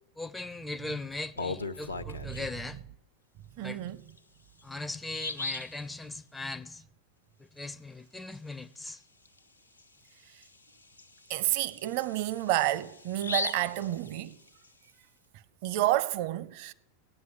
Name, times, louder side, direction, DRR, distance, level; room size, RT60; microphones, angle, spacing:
voice 1, 0.2-2.8 3.6-3.8 4.6-6.9 7.4-9.0, left 2 dB, 5° left, 0.4 m, -39 dB
Bird vocalization bird call bird song, 1.1-2.6 4.1-4.2 4.6-4.7 5.1-5.8 9.3-9.4 9.8-9.9 10.4-14.7, left 3 dB, 80° left, 0.8 m, -38 dB
voice 2, 2.0-2.8 3.6-4.0 11.3-14.4 15.6-16.7, right 15 dB, 45° right, 0.6 m, -30 dB
17.0 x 9.5 x 7.6 m
figure-of-eight pair, 90°, 0 cm